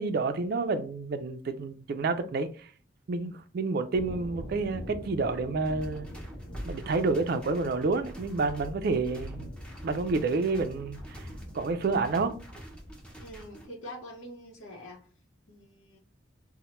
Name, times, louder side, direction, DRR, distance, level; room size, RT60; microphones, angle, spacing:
voice 1, 0.0-2.7 3.1-6.1 6.7-9.5 9.8-11.2 11.5-12.3, right 3 dB, 50° right, 0.3 m, -29 dB
sound 1, 3.9-13.4, equal, 30° left, 1.2 m, -43 dB
sound 2, 5.6-13.6, right 1 dB, 5° left, 0.5 m, -49 dB
voice 2, 13.2-15.1 15.5-16.0, equal, 85° left, 0.8 m, -45 dB
4.3 x 2.1 x 2.9 m
head